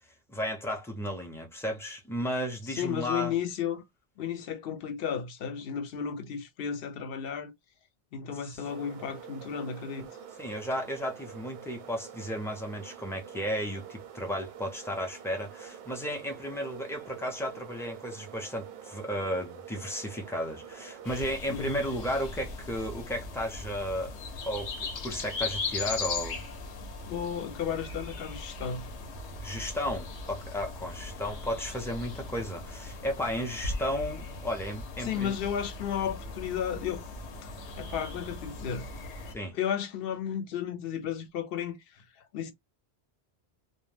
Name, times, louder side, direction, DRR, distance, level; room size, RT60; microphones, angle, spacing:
voice 1, 0.3-3.3 8.5-8.6 10.4-24.2 24.5-26.4 29.4-35.4 39.3-39.5, equal, 5° left, 0.3 m, -34 dB
voice 2, 2.7-3.8 4.2-7.5 8.1-10.1 21.5-21.8 26.8-28.9 35.0-37.5 37.8-38.9 39.5-42.0 42.3-42.5, left 8 dB, 65° left, 0.7 m, -33 dB
sound 1, 8.6-21.2, right 8 dB, 85° right, 0.9 m, -46 dB
sound 2, 21.0-39.3, left 3 dB, 90° left, 1.0 m, -39 dB
2.2 x 2.1 x 3.2 m
omnidirectional pair, 1.1 m